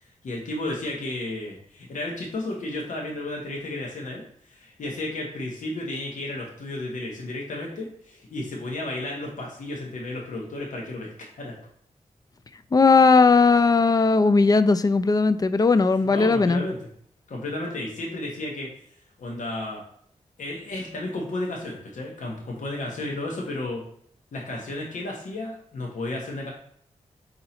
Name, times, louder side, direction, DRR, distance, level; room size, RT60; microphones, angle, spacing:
voice 1, 0.0-11.5 16.1-16.8 17.3-18.7 19.2-19.8 20.4-23.8 24.3-26.5, left 2 dB, 75° left, -1 dB, 1.0 m, -33 dB
voice 2, 12.7-16.6, left 4 dB, 30° left, 12 dB, 0.3 m, -18 dB
3.9 x 2.8 x 4.2 m, 0.65 s
cardioid pair, 55°, 13 cm